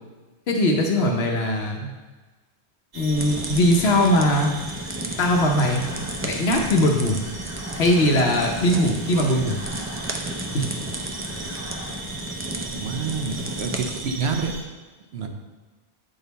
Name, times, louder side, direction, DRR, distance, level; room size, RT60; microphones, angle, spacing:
voice 1, 0.5-1.9 2.9-4.5 5.2-5.8 6.2-7.2 7.8-9.6 10.5-10.7, left 1 dB, 70° left, 1 dB, 1.0 m, -20 dB
sound 1, 2.9-14.6, right 2 dB, 45° right, 0.8 m, -38 dB
sound 2, 3.2-14.0, right 1 dB, 20° right, 0.3 m, -33 dB
sound 3, 5.2-11.9, equal, 55° left, 1.7 m, -44 dB
voice 2, 12.7-14.5 15.1-15.3, right 5 dB, 75° right, 3 dB, 1.0 m, -28 dB
8.7 x 3.9 x 4.1 m, 1.3 s
omnidirectional pair, 1.1 m